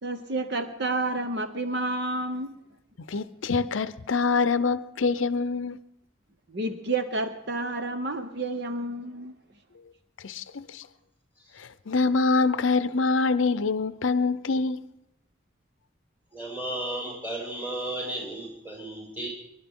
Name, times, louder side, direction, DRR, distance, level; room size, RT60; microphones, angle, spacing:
voice 1, 0.0-2.5 6.5-9.3, right 2 dB, 55° right, 0.9 m, -30 dB
voice 2, 3.1-5.8 10.2-10.9 11.6-14.8, left 4 dB, 75° left, 0.6 m, -25 dB
voice 3, 16.3-19.3, right 1 dB, 10° right, 5.1 m, -34 dB
26.0 x 12.0 x 3.7 m
head